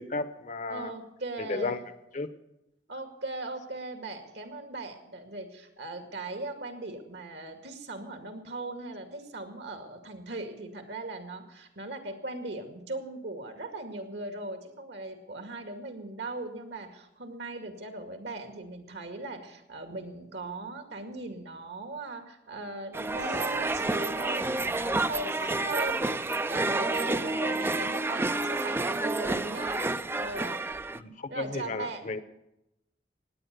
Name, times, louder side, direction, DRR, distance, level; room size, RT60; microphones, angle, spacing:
voice 1, 0.0-0.9 1.4-1.8 2.1-2.3 27.4-27.6 31.0-32.2, left 3 dB, 45° left, 12 dB, 0.9 m, -34 dB
voice 2, 0.7-1.8 2.9-29.9 30.1-30.7 31.3-32.2, right 2 dB, 70° right, 6 dB, 2.2 m, -39 dB
sound 1, 22.9-31.0, right 2 dB, 15° right, 0.4 m, -29 dB
17.5 x 9.7 x 6.8 m, 0.87 s
head